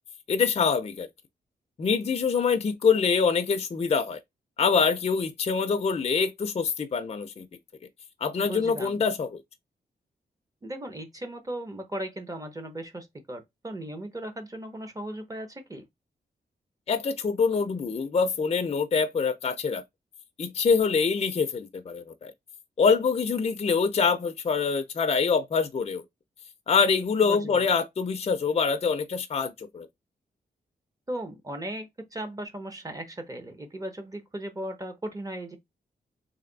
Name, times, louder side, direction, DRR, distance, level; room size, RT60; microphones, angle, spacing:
voice 1, 0.3-1.1 1.8-4.2 4.6-7.5 8.2-9.4 16.9-19.8 20.4-22.3 22.8-26.0 26.7-29.9, left 5 dB, 35° left, 0.5 m, -25 dB
voice 2, 8.4-9.0 10.6-15.8 27.2-27.7 31.1-35.6, right 1 dB, 20° right, 0.9 m, -37 dB
3.3 x 2.6 x 3.9 m
wide cardioid pair, 105°, 17 cm